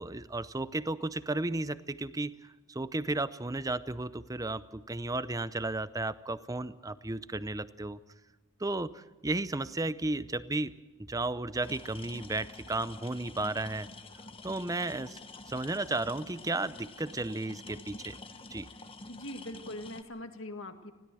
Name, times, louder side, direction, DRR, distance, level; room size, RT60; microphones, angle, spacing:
voice 1, 0.0-2.3 2.7-8.0 8.6-10.7 11.1-13.9 14.4-15.2 15.5-18.1 18.5-18.7, right 2 dB, 15° right, 15 dB, 0.6 m, -34 dB
sound 1, 11.6-20.0, left 3 dB, 25° left, 1.1 m, -48 dB
voice 2, 19.1-20.9, left 1 dB, 60° left, 7 dB, 1.8 m, -41 dB
21.0 x 17.0 x 7.7 m, 1.2 s
head